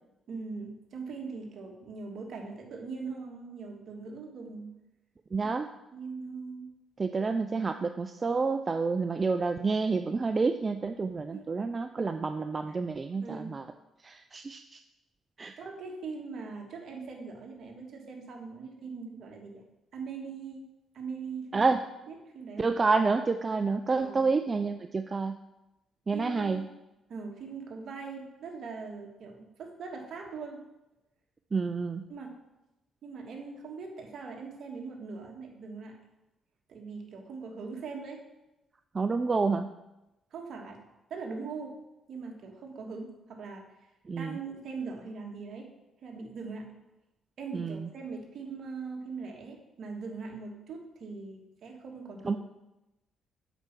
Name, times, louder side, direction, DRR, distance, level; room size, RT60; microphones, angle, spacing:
voice 1, 0.3-4.7 5.4-5.5 5.9-6.7 11.3-11.5 12.7-12.8 13.2-13.5 15.6-19.6 19.9-20.7 20.9-21.6 22.1-22.7 24.0-24.3 26.1-26.7 27.1-30.6 32.1-32.3 33.0-36.0 36.7-38.2 40.3-40.8 41.1-41.7 42.1-43.6 44.1-45.7 46.0-46.7 47.4-52.4, right 4 dB, 60° right, 2 dB, 1.6 m, -41 dB
voice 2, 5.3-5.7 7.0-13.6 14.0-14.8 15.4-15.5 21.5-21.8 22.6-25.4 26.1-26.6 31.5-32.0 38.9-39.6 44.1-44.4 47.5-47.9 52.2-52.4, right 4 dB, 30° right, 8 dB, 0.4 m, -29 dB
8.1 x 4.5 x 6.0 m, 0.96 s
cardioid pair, 90°, 0 cm